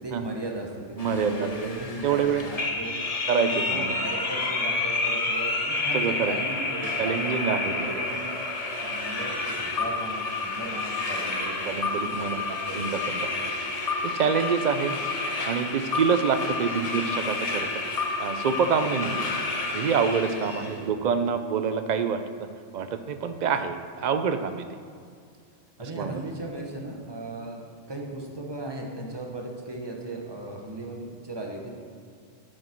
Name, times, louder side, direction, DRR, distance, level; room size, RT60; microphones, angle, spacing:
voice 1, 0.0-3.0 3.5-7.2 7.6-8.2 8.7-13.0 13.4-13.5 14.9-15.0 19.1-19.4 20.4-21.0 25.8-27.6 27.9-31.8, right 2 dB, 20° right, 0 dB, 1.1 m, -37 dB
sound 1, 1.0-20.8, left 3 dB, 35° left, 0.9 m, -30 dB
voice 2, 1.0-1.7 2.0-2.4 3.3-4.0 5.9-6.3 7.0-7.9 11.7-12.4 12.7-12.9 13.2-13.3 14.0-14.9 15.5-17.7 18.2-19.3 19.7-22.2 22.7-24.6 26.0-26.1, right 6 dB, 60° right, 9 dB, 0.4 m, -26 dB
10.0 x 6.6 x 4.5 m, 2.3 s
omnidirectional pair, 1.3 m